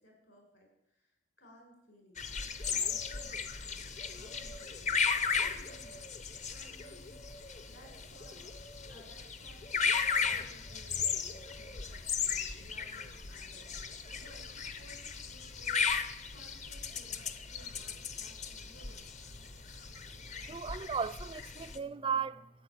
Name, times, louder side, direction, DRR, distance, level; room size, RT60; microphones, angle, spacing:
voice 1, 0.0-6.1 6.5-8.4 8.9-13.7 14.1-19.0, right 1 dB, 60° left, 6.0 m, -59 dB
sound 1, 2.2-21.8, left 5 dB, 35° left, 0.8 m, -36 dB
voice 2, 20.4-22.5, right 6 dB, 25° right, 0.4 m, -35 dB
12.5 x 8.1 x 9.9 m
head